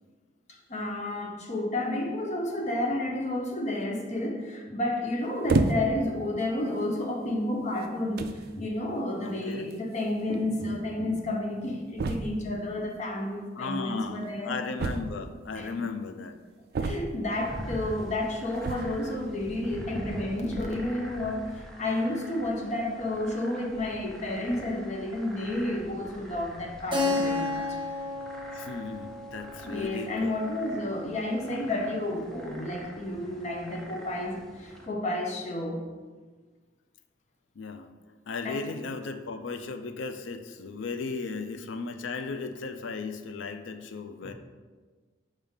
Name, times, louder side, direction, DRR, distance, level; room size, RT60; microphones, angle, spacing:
voice 1, 0.5-14.6 15.5-15.7 16.8-27.8 29.6-35.8 38.4-38.6 44.2-44.3, left 1 dB, 40° left, 1 dB, 0.8 m, -31 dB
sound 1, 5.5-6.1 6.9-7.0 7.8-7.9 8.2-8.5 9.7-9.8 10.0-10.1 10.3-10.4 12.0-12.5 14.8-15.5 16.7-17.4 18.6-19.0, right 3 dB, 55° right, 0.4 m, -29 dB
voice 2, 9.2-9.7 13.6-16.4 28.5-30.4 37.6-37.9 38.3-44.3, left 4 dB, 75° left, 8 dB, 0.4 m, -36 dB
sound 2, 17.3-34.9, equal, ahead, 0.6 m, -45 dB
Keyboard (musical), 26.9-31.5, left 2 dB, 25° right, 0.9 m, -33 dB
4.9 x 3.6 x 5.5 m, 1.4 s
head